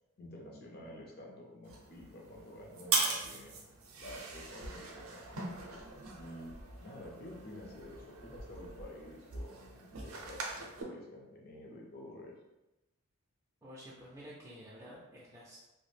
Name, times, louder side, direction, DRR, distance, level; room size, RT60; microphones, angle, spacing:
voice 1, 0.2-3.6 4.0-5.8 6.2-10.5 10.8-12.3, left 1 dB, 45° left, -1 dB, 0.6 m, -50 dB
sound 1, 1.6-10.8, right 3 dB, 70° right, 0.5 m, -40 dB
voice 2, 13.6-15.6, equal, 15° right, -7 dB, 0.3 m, -51 dB
2.3 x 2.0 x 3.1 m, 0.99 s
head